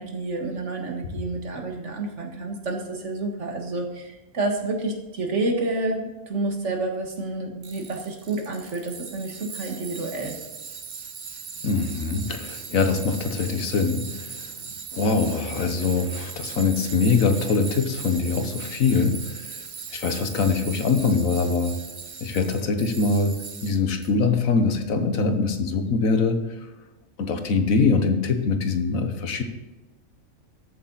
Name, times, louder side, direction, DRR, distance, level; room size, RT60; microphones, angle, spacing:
voice 1, 0.0-10.4, right 2 dB, 60° right, 2 dB, 1.9 m, -29 dB
Tools, 7.6-24.1, right 6 dB, 45° right, 0.7 m, -39 dB
voice 2, 11.6-14.5 14.9-19.6 19.9-21.8 22.2-26.5 27.2-29.4, left 4 dB, 85° left, 7 dB, 1.5 m, -23 dB
13.5 x 8.5 x 4.0 m, 1.1 s
omnidirectional pair, 1.4 m